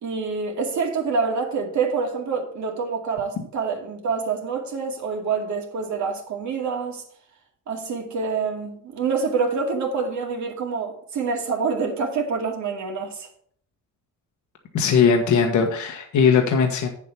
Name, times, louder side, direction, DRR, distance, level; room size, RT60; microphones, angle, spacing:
voice 1, 0.0-7.0 7.7-13.3, right 5 dB, 70° right, 2.2 m, -26 dB
voice 2, 14.7-16.9, left 6 dB, 75° left, 1.4 m, -19 dB
8.6 x 7.3 x 4.6 m
cardioid pair, 90°, 30 cm